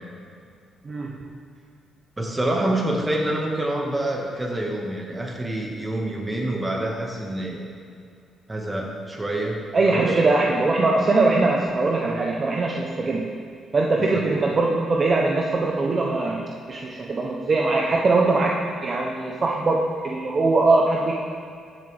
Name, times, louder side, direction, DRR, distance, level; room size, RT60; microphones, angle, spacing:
voice 1, 0.8-1.2 9.7-13.3 13.7-21.2, right 3 dB, 40° right, -1 dB, 0.8 m, -21 dB
voice 2, 2.2-7.6 8.5-10.2 14.1-14.3, right 1 dB, 20° right, 0 dB, 1.7 m, -27 dB
14.5 x 7.0 x 3.5 m, 2.3 s
cardioid pair, 90°, 0 cm